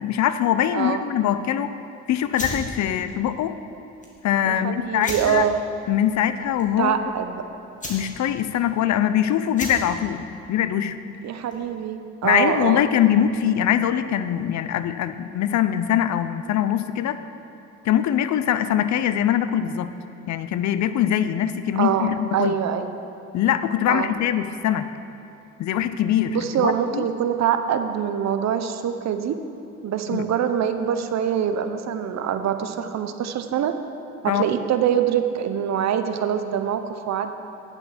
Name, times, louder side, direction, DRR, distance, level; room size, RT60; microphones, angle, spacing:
voice 1, 0.0-1.7 2.1-3.6 4.2-5.5 5.9-6.9 7.9-11.0 12.2-17.2 17.8-20.0 20.3-22.6 23.3-24.9 25.6-27.1 30.1-30.3 34.3-34.4, left 10 dB, 65° left, 12 dB, 0.6 m, -22 dB
sound 1, 2.3-11.8, left 1 dB, 25° left, 2.3 m, -38 dB
voice 2, 4.5-5.6 6.8-7.4 11.2-12.8 21.8-22.9 23.9-24.1 26.3-29.4 29.8-33.8 34.2-37.3, right 9 dB, 65° right, 8 dB, 0.8 m, -24 dB
10.0 x 7.1 x 5.8 m, 2.8 s
cardioid pair, 90°, 30 cm